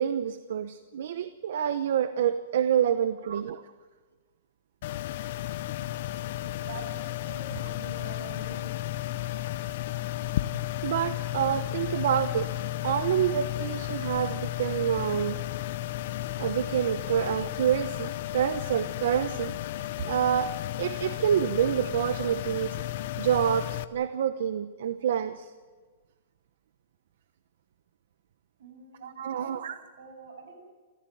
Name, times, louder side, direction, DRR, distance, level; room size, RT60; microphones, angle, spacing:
voice 1, 0.0-3.6 10.8-12.5 12.8-15.4 16.4-19.5 20.0-20.5 20.8-22.8 23.2-25.5 29.0-29.8, right 9 dB, 55° right, 11 dB, 0.9 m, -27 dB
voice 2, 2.8-3.2 6.6-8.8 28.6-29.5 30.0-30.6, right 3 dB, 75° right, 6 dB, 7.7 m, -46 dB
sound 1, 4.8-23.8, left 15 dB, 40° left, 0.7 m, -33 dB
28.0 x 15.5 x 9.3 m, 1.4 s
supercardioid pair, 180°, 0 cm